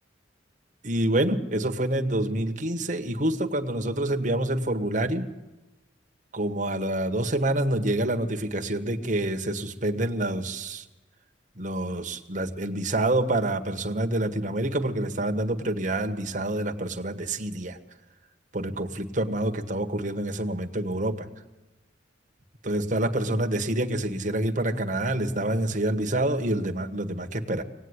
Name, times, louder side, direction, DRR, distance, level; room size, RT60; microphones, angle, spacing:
voice 1, 0.8-5.3 6.3-10.8 11.6-17.8 18.5-21.3 22.6-27.6, right 1 dB, 40° right, 4 dB, 1.7 m, -27 dB
25.0 x 18.5 x 9.9 m, 1.1 s
head